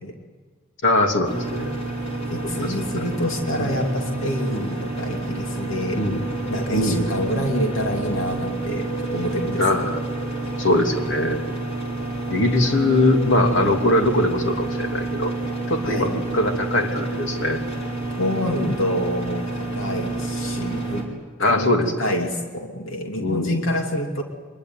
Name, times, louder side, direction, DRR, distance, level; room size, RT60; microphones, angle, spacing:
voice 1, 0.8-1.7 2.6-3.1 3.6-3.8 4.5-4.7 5.9-6.2 6.7-7.1 9.6-10.0 10.6-11.4 12.3-15.3 15.7-17.6 21.4-22.1 23.2-23.7, left 1 dB, 70° left, 3 dB, 3.1 m, -21 dB
sound 1, 1.2-21.0, right 2 dB, 30° left, 5.2 m, -29 dB
voice 2, 2.3-6.0 6.5-9.8 15.8-16.1 18.2-21.0 21.4-21.7 22.0-24.2, equal, 90° left, 2 dB, 2.9 m, -27 dB
25.0 x 22.5 x 9.6 m, 1.4 s
head